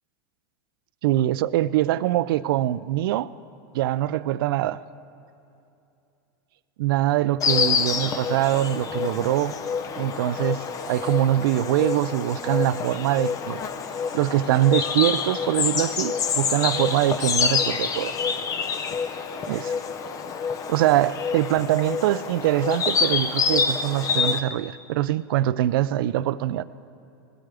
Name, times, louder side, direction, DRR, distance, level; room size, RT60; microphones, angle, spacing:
voice 1, 1.0-3.3 3.7-4.8 6.8-9.6 10.0-13.6 14.1-18.2 19.5-19.7 20.7-26.6, right 13 dB, 70° right, 0.4 m, -23 dB
Insect, 7.4-24.4, left 6 dB, 30° left, 0.6 m, -27 dB
20.0 x 12.5 x 3.4 m
supercardioid pair, 135°, 12 cm